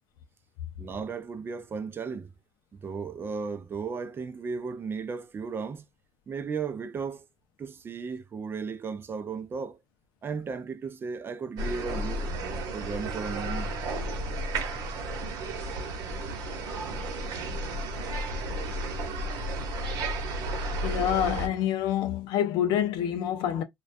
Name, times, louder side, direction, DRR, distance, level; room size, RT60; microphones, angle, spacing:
voice 1, 0.8-2.3 2.7-5.8 6.3-7.3 7.6-9.8 10.2-12.4 12.7-13.7, right 5 dB, 30° right, 0.4 m, -35 dB
sound 1, 11.6-21.5, right 2 dB, 65° right, 0.9 m, -33 dB
voice 2, 20.8-23.6, left 10 dB, 75° left, 0.5 m, -27 dB
2.2 x 2.2 x 2.5 m
cardioid pair, 110°, 8 cm